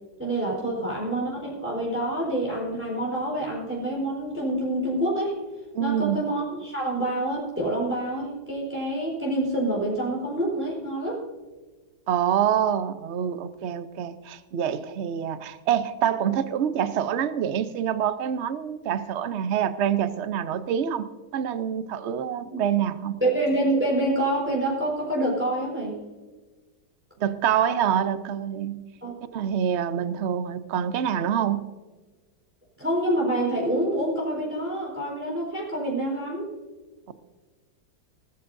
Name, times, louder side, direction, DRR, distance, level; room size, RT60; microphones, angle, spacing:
voice 1, 0.2-5.4 5.8-11.2 23.2-26.0 29.0-29.1 32.8-36.5, right 1 dB, 5° right, -4 dB, 4.2 m, -27 dB
voice 2, 5.7-6.2 12.1-23.2 27.2-28.8 29.3-31.7, right 9 dB, 55° right, 12 dB, 0.7 m, -26 dB
19.5 x 14.0 x 2.6 m, 1.3 s
omnidirectional pair, 2.0 m